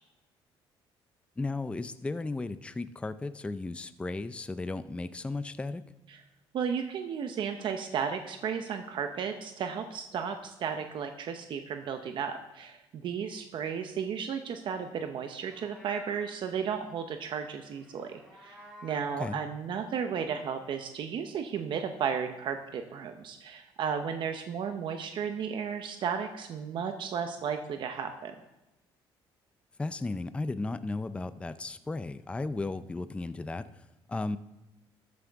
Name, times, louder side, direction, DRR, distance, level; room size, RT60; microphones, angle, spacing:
voice 1, 1.4-5.8 19.2-19.4 29.8-34.4, left 3 dB, 10° left, 13 dB, 0.4 m, -35 dB
voice 2, 6.5-28.3, right 7 dB, 60° right, 6 dB, 0.8 m, -34 dB
Livestock farm animals working animals, 15.3-16.4 17.7-19.2, equal, 5° right, 4.3 m, -53 dB
13.0 x 9.5 x 3.5 m, 0.98 s
cardioid pair, 105°, 9 cm